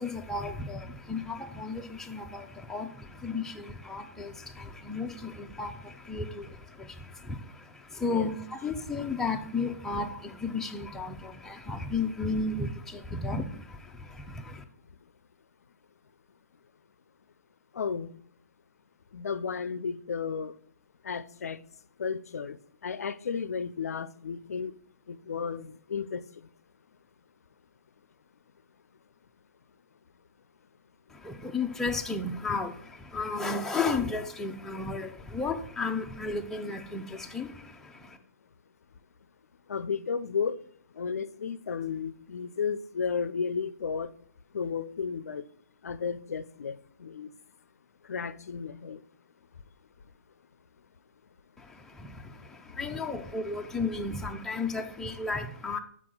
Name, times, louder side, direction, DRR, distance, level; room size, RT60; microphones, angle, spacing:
voice 1, 0.0-14.6 31.1-38.2 51.6-55.8, left 3 dB, 5° left, 0.5 m, -34 dB
voice 2, 17.7-18.1 19.1-20.5 21.0-21.6 22.0-22.6 22.8-24.7 25.1-26.2 39.7-40.6 41.0-44.1 44.5-45.4 45.8-47.3 48.1-49.0, left 6 dB, 80° left, 0.4 m, -33 dB
5.9 x 4.7 x 3.8 m
hypercardioid pair, 135°, 8 cm